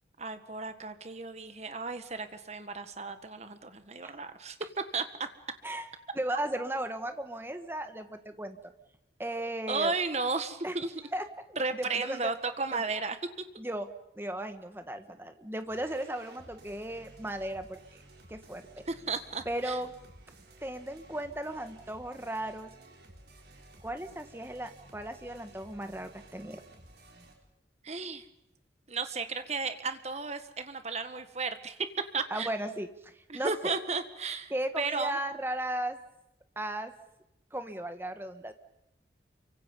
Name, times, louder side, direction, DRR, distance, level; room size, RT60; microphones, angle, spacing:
voice 1, 0.2-4.6 4.9-5.3 9.7-10.9 11.6-13.2 18.9-19.8 27.8-28.2 28.9-31.9 32.1-32.5 33.3-35.2, right 4 dB, 35° right, 9 dB, 1.7 m, -34 dB
voice 2, 6.1-8.7 9.2-9.9 10.6-10.8 11.1-12.3 12.7-12.8 13.6-13.9 14.1-18.0 18.3-18.8 19.4-19.9 20.6-22.7 23.8-26.6 32.3-33.7 34.5-36.0 36.5-36.9 37.5-38.5, right 1 dB, 10° right, 8 dB, 1.5 m, -36 dB
sound 1, 15.7-27.3, right 1 dB, 60° right, 4.9 m, -55 dB
28.5 x 24.5 x 5.4 m, 0.85 s
head